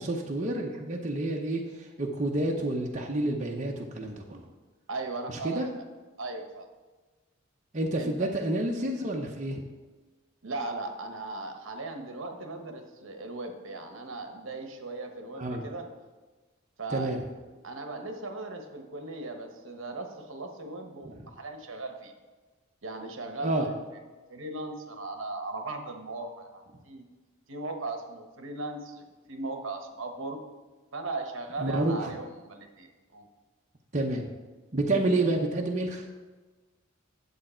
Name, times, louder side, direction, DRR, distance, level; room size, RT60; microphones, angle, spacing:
voice 1, 0.0-4.4 5.3-5.7 7.7-9.6 15.4-15.6 16.9-17.2 21.0-21.1 23.4-23.7 31.6-32.1 33.9-34.3 34.7-36.1, right 2 dB, 35° right, -1 dB, 0.8 m, -29 dB
voice 2, 4.9-5.6 6.2-6.7 8.0-8.3 10.4-15.9 16.8-17.1 17.6-22.1 22.8-23.7 24.3-27.0 27.5-30.4 30.9-33.3, right 2 dB, 65° right, 5 dB, 1.1 m, -38 dB
9.5 x 7.6 x 4.4 m, 1.3 s
head